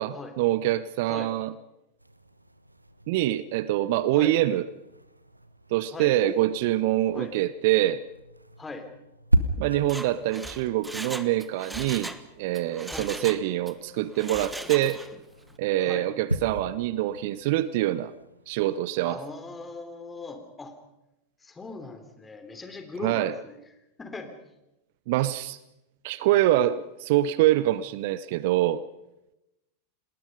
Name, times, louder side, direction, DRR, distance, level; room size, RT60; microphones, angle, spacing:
voice 1, 0.0-1.5 3.1-4.7 5.7-8.0 9.6-15.0 15.6-18.1 18.5-19.2 23.0-23.3 25.1-25.6 26.0-28.8, right 14 dB, 50° right, 0.8 m, -25 dB
sound 1, 2.0-18.8, right 1 dB, 85° right, 1.1 m, -36 dB
voice 2, 5.9-6.4 7.1-7.3 8.6-8.9 12.9-13.1 15.8-16.1 19.0-20.7 21.4-23.6 24.0-24.3, left 3 dB, 15° left, 3.3 m, -39 dB
Mechanisms, 9.8-12.2 12.5-13.8 14.1-15.2 15.5-15.6, right 1 dB, 5° right, 1.3 m, -39 dB
28.5 x 20.0 x 5.4 m
figure-of-eight pair, 90°, 0 cm